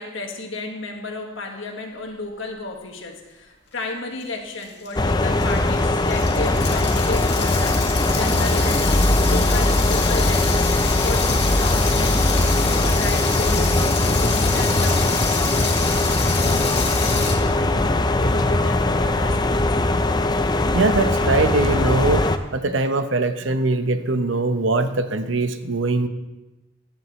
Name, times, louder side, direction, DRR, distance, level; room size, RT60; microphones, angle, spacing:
voice 1, 0.0-10.7 11.0-19.7, left 2 dB, 80° left, 2 dB, 1.7 m, -33 dB
sound 1, 4.2-4.3 4.6-17.3, left 5 dB, 60° left, 2.1 m, -28 dB
sound 2, 5.0-22.4, left 2 dB, 20° left, 0.5 m, -20 dB
voice 2, 20.7-22.2 22.5-26.1, right 3 dB, 75° right, 9 dB, 0.9 m, -21 dB
15.0 x 11.0 x 3.2 m, 1.1 s
head